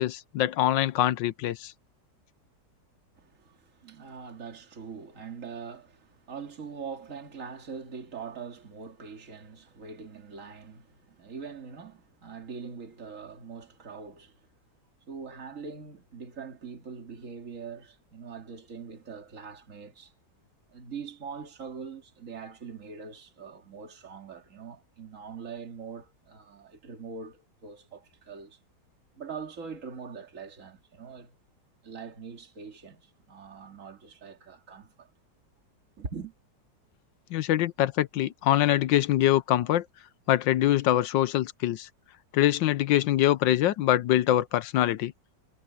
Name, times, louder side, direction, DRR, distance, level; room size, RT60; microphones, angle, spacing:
voice 1, 0.0-1.7 37.3-39.9 40.3-41.9 42.3-45.1, left 13 dB, 85° left, 1.4 m, -24 dB
voice 2, 3.2-14.5 15.1-20.1 20.7-28.6 29.2-31.3 31.8-35.1 36.0-36.3, right 5 dB, 45° right, 2.7 m, -42 dB
omnidirectional pair, 1.9 m